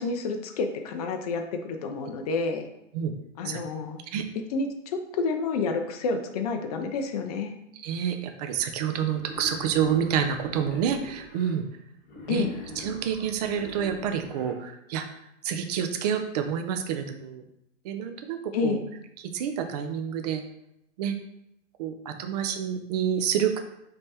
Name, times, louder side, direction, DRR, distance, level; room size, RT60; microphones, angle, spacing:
voice 1, 0.0-2.7 3.4-4.0 4.5-7.5 12.3-12.5 18.5-18.8, left 4 dB, 35° left, 6 dB, 0.4 m, -29 dB
voice 2, 7.8-11.6 12.3-12.4 12.8-15.0 15.4-17.4 17.8-18.8 19.2-20.4 21.0-21.2 21.8-23.6, right 8 dB, 35° right, 6 dB, 0.4 m, -28 dB
Wild animals, 9.0-11.5 12.0-14.5, left 1 dB, 50° left, 1.5 m, -43 dB
5.2 x 3.3 x 2.8 m, 0.83 s
hypercardioid pair, 145°, 37 cm